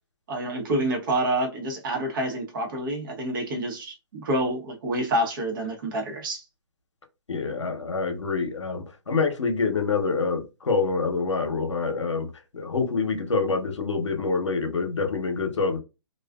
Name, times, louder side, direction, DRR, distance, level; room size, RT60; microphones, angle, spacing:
voice 1, 0.3-6.4, right 1 dB, 45° right, 0.9 m, -28 dB
voice 2, 7.3-12.3 12.5-15.8, left 4 dB, 85° left, 0.8 m, -26 dB
2.5 x 2.3 x 2.3 m
hypercardioid pair, 140°, 15 cm